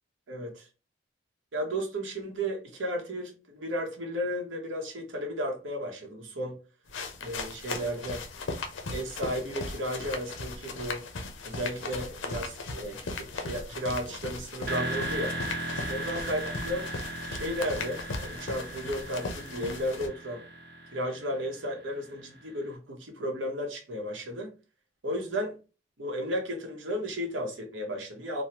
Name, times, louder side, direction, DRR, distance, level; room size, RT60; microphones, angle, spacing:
voice 1, 0.3-0.7 1.5-6.6 7.2-8.2 8.9-11.0 11.4-15.4 15.9-16.9 17.3-20.4 20.9-24.5 25.0-25.6 26.0-28.4, equal, 90° right, 0.8 m, -34 dB
sound 1, 6.9-20.1, left 3 dB, 90° left, 0.6 m, -38 dB
sound 2, 14.7-22.5, right 1 dB, 55° right, 0.7 m, -37 dB
3.0 x 2.0 x 2.8 m
head